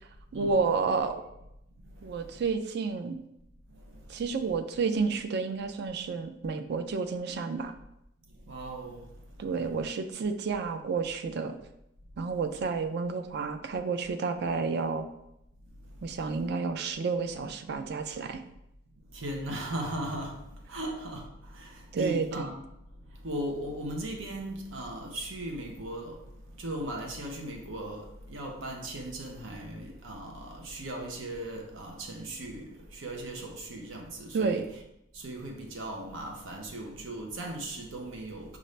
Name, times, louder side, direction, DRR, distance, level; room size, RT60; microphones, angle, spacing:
voice 1, 0.3-1.2 2.0-3.2 4.1-7.7 9.4-11.6 12.2-15.1 16.0-18.4 21.9-22.5 34.3-34.6, right 4 dB, 60° right, 0.4 m, -30 dB
voice 2, 8.5-9.1 19.1-20.4 20.7-21.3 21.5-22.6 23.2-26.2 26.6-32.7 32.9-34.6 35.1-38.6, right 1 dB, 90° right, 0.8 m, -37 dB
5.2 x 2.5 x 3.2 m
head